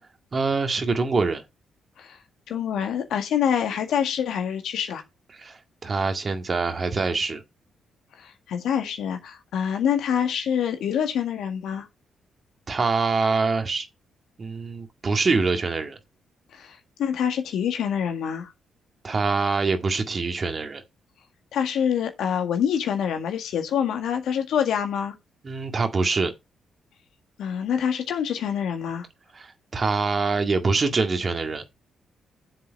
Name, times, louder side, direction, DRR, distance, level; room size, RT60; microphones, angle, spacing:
voice 1, 0.3-1.4 5.3-7.4 12.7-13.9 14.4-16.0 19.0-20.8 25.4-26.3 29.3-31.6, right 4 dB, 45° right, 1.9 m, -24 dB
voice 2, 2.5-5.0 8.2-11.9 16.5-18.5 21.5-25.1 27.4-29.1, left 8 dB, 70° left, 1.7 m, -26 dB
7.6 x 6.8 x 4.5 m
hypercardioid pair, 45°, 0 cm